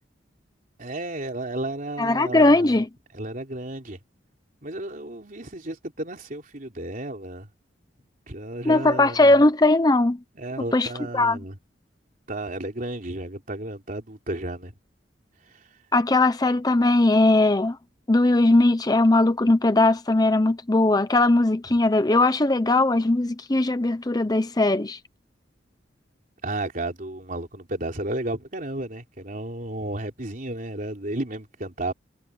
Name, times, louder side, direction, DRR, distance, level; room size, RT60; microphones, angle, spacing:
voice 1, 0.8-2.8 3.1-4.0 4.6-7.5 8.3-9.4 10.4-11.6 12.3-14.7 15.5-15.7 26.4-31.9, right 1 dB, 45° right, 3.6 m, -33 dB
voice 2, 2.0-2.9 8.6-10.2 10.7-10.9 11.1-11.4 15.9-17.8 18.1-25.0, left 2 dB, 20° left, 0.7 m, -19 dB
head